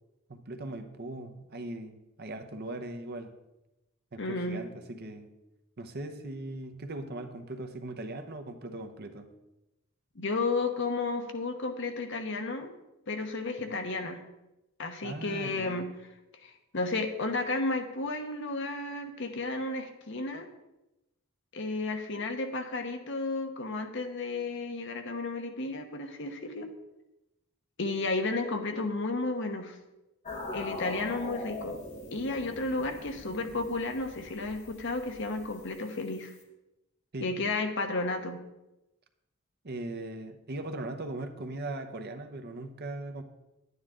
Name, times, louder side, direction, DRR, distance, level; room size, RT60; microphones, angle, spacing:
voice 1, 0.3-3.3 4.1-5.3 5.8-9.3 15.0-15.9 37.1-37.3 39.6-43.2, right 2 dB, 50° right, 6 dB, 0.9 m, -39 dB
voice 2, 4.2-4.6 10.1-12.7 13.1-14.2 14.8-15.9 16.4-20.5 21.5-26.7 27.8-29.8 30.5-31.8 32.1-36.3 37.2-38.4, left 3 dB, 60° left, 5 dB, 1.1 m, -32 dB
sound 1, 30.3-36.4, left 2 dB, 35° left, 1.5 m, -43 dB
11.0 x 9.5 x 3.8 m, 0.96 s
head